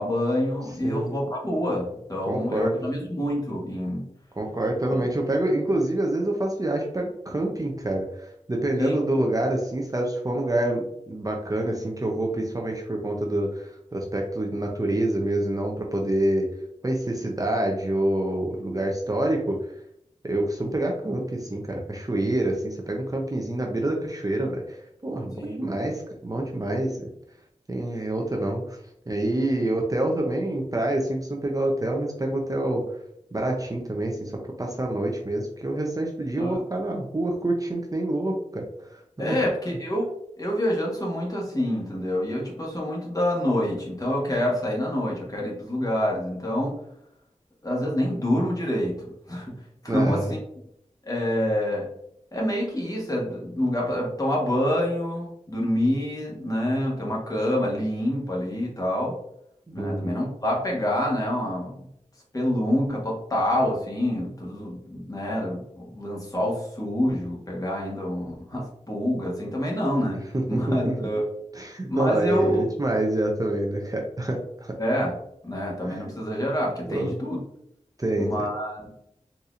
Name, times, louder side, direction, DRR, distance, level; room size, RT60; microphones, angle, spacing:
voice 1, 0.0-4.0 4.9-5.0 8.8-9.0 25.4-25.6 36.4-36.6 39.2-40.1 40.4-46.8 47.6-49.5 49.8-50.4 51.0-51.9 52.3-59.1 59.7-61.7 62.3-70.2 70.5-71.2 71.9-72.7 74.7-75.2 75.4-77.4 78.2-78.9, left 1 dB, 25° left, -3 dB, 1.2 m, -27 dB
voice 2, 0.8-1.1 2.3-2.7 4.3-16.5 16.8-19.6 20.2-27.1 27.7-28.8 29.1-32.8 33.3-39.4 49.9-50.3 59.7-60.3 70.3-71.0 71.5-74.8 75.8-76.0 76.9-77.1 78.0-78.3, right 1 dB, 30° right, 0 dB, 0.5 m, -27 dB
4.1 x 2.7 x 2.5 m, 0.74 s
wide cardioid pair, 65°, 13 cm